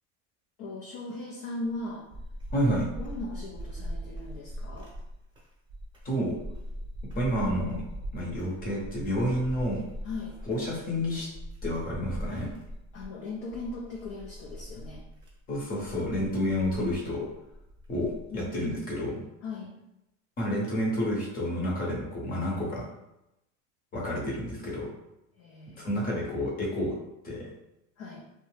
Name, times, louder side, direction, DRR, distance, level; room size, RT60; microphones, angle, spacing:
voice 1, 0.6-2.1 3.0-4.9 10.0-10.4 12.2-12.5 12.9-15.0 18.3-18.5 19.4-19.7 25.4-25.9 28.0-28.2, left 2 dB, 40° left, -2 dB, 0.5 m, -38 dB
sound 1, 1.6-18.5, equal, 10° right, 0.8 m, -41 dB
voice 2, 2.5-2.9 6.0-6.4 7.2-7.8 8.1-9.8 10.5-11.3 11.6-12.5 15.5-17.3 17.9-19.2 20.4-22.8 23.9-24.9 25.7-27.0 27.2-27.5, equal, 25° left, -3 dB, 0.9 m, -29 dB
2.6 x 2.1 x 3.2 m, 0.89 s
supercardioid pair, 130°, 39 cm